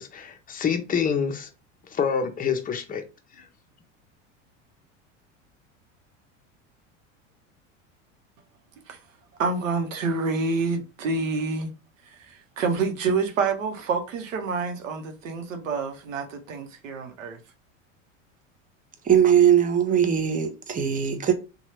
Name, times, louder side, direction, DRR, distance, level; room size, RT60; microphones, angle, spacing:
voice 1, 0.0-1.5 1.9-3.0 3.4-3.5, left 6 dB, 20° left, 0.6 m, -27 dB
voice 2, 9.4-11.7 12.1-17.4, right 4 dB, 85° right, 0.8 m, -28 dB
voice 3, 19.0-21.3, right 9 dB, 20° right, 0.6 m, -20 dB
2.8 x 2.3 x 3.1 m
hypercardioid pair, 85°, 38 cm